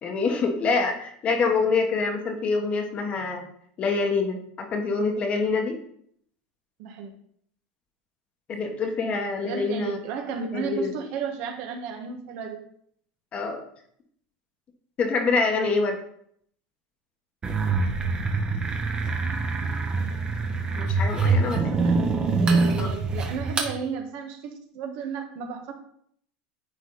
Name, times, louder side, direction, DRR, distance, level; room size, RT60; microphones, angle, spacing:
voice 1, 0.0-3.5 3.8-5.8 8.5-10.0 10.5-10.9 13.3-13.6 15.0-16.0 20.8-21.6 22.8-22.9, left 4 dB, 35° left, 4 dB, 1.4 m, -25 dB
voice 2, 6.8-7.1 9.4-12.6 21.1-22.1 22.4-25.7, right 6 dB, 60° right, 4 dB, 1.4 m, -34 dB
sound 1, 17.4-23.7, right 3 dB, 20° right, 1.2 m, -25 dB
9.9 x 4.1 x 4.0 m, 0.67 s
supercardioid pair, 130°, 4 cm